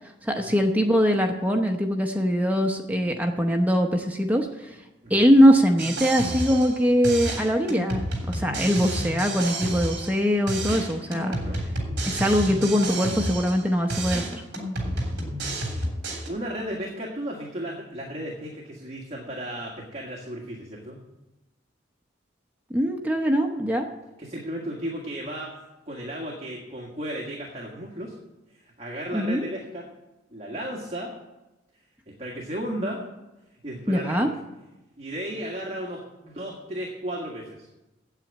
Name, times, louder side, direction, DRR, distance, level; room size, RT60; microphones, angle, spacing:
voice 1, 0.2-4.8 5.1-8.0 8.3-11.4 12.0-14.4 22.7-23.9 29.1-29.4 33.9-34.3, equal, 10° right, 3 dB, 0.8 m, -22 dB
sound 1, 5.8-6.8 7.0-10.2 10.5-13.6 13.9-16.3, right 1 dB, 60° right, 3.3 m, -30 dB
voice 2, 11.0-11.6 16.3-21.0 24.2-28.1 28.5-29.9 30.3-31.1 32.2-33.0 33.6-34.3 35.0-37.7, equal, 35° right, -2 dB, 1.7 m, -34 dB
9.0 x 8.4 x 8.6 m, 1.0 s
head